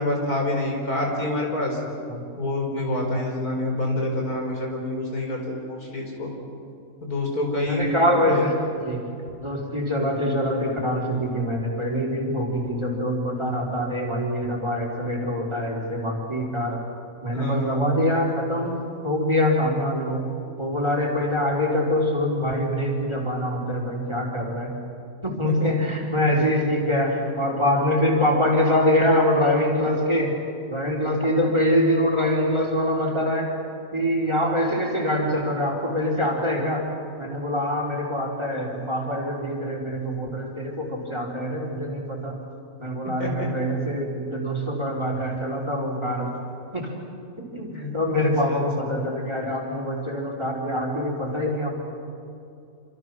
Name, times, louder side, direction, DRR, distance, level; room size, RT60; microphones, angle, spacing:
voice 1, 0.0-1.8 2.4-6.3 7.0-8.4 17.3-17.8 25.4-25.7 43.2-43.5 47.7-48.7, left 1 dB, 85° left, 0 dB, 5.1 m, -27 dB
voice 2, 7.7-9.0 9.4-16.8 17.2-20.3 20.6-24.8 25.2-30.4 30.7-33.5 33.9-36.9 37.2-42.4 42.8-46.4 46.7-46.9 47.4-51.7, left 1 dB, 20° right, -1 dB, 3.7 m, -24 dB
27.0 x 26.0 x 6.1 m, 2.6 s
omnidirectional pair, 1.5 m